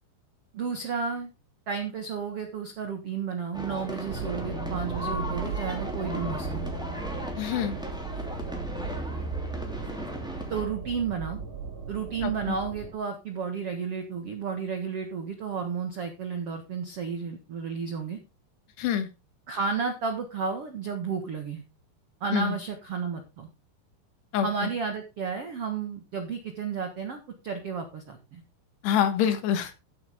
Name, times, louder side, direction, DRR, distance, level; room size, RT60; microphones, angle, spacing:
voice 1, 0.5-1.3 1.7-6.7 10.5-11.4 11.9-18.2 19.5-21.6 22.2-23.5 24.4-28.4, right 5 dB, 90° right, 6 dB, 1.3 m, -32 dB
sound 1, 3.5-10.7, left 1 dB, ahead, 1.8 m, -36 dB
sound 2, 4.1-12.9, right 5 dB, 40° right, 2.2 m, -36 dB
voice 2, 7.4-7.7 12.2-12.6 18.8-19.1 22.3-22.6 24.3-24.5 28.8-29.7, left 9 dB, 70° left, 9 dB, 3.5 m, -26 dB
14.5 x 8.5 x 3.6 m, 0.27 s
omnidirectional pair, 5.2 m